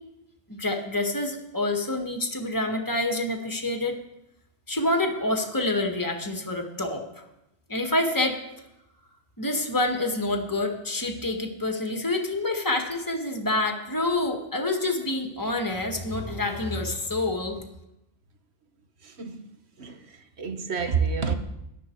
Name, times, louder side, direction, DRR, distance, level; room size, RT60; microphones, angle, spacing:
voice 1, 0.5-3.9 4.7-7.2 7.7-8.4 9.4-17.6, left 2 dB, 20° left, 1.8 m, -27 dB
voice 2, 19.0-19.5 19.8-21.3, right 6 dB, 80° right, 1.6 m, -29 dB
18.0 x 12.0 x 4.7 m
omnidirectional pair, 1.1 m